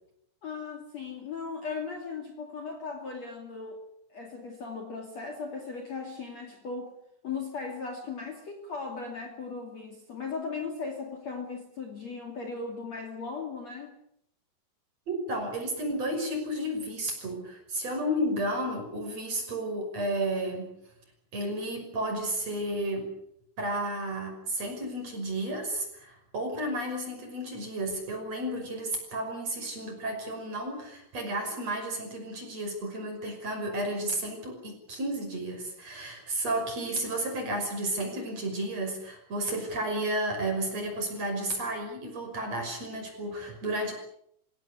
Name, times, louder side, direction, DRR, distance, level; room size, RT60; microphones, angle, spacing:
voice 1, 0.4-3.8 4.1-6.9 7.2-14.0, left 4 dB, 40° left, 4 dB, 3.2 m, -37 dB
voice 2, 15.1-20.7 21.3-23.1 23.6-43.9, right 1 dB, 35° right, 4 dB, 6.6 m, -32 dB
27.0 x 17.0 x 8.4 m, 0.73 s
omnidirectional pair, 5.5 m